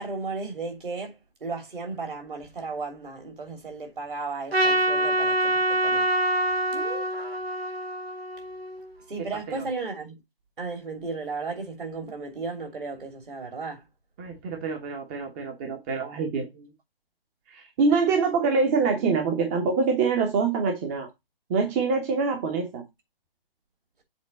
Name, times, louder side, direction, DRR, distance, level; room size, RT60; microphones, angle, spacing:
voice 1, 0.0-6.1 9.1-10.2 10.6-13.8, right 4 dB, 60° right, 3.1 m, -34 dB
Trumpet, 4.5-8.9, right 1 dB, 85° right, 1.4 m, -25 dB
voice 2, 6.7-7.0 9.6-9.7 14.2-16.7 17.5-21.1 21.5-22.8, right 4 dB, 15° right, 0.9 m, -25 dB
7.2 x 3.9 x 5.2 m
figure-of-eight pair, 145°, 30 cm